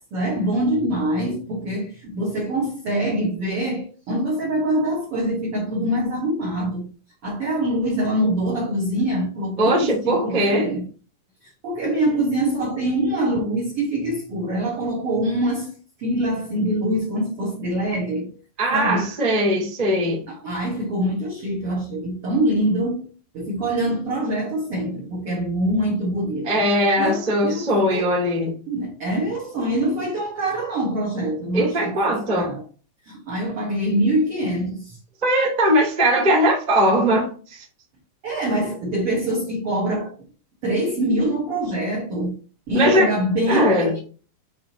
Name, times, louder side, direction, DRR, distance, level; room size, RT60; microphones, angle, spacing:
voice 1, 0.1-6.9 7.2-10.8 11.4-15.7 16.0-18.3 18.7-19.1 20.3-23.0 23.3-26.6 27.0-28.1 28.7-32.6 33.0-35.0 38.2-40.1 40.6-42.4 42.7-44.0, right 1 dB, 55° right, 1.6 m, -24 dB
voice 2, 9.6-10.7 18.6-20.2 26.4-28.5 31.5-32.5 35.2-37.6 42.7-43.1 43.5-43.9, equal, 15° right, 1.4 m, -20 dB
9.0 x 3.8 x 3.0 m
omnidirectional pair, 5.2 m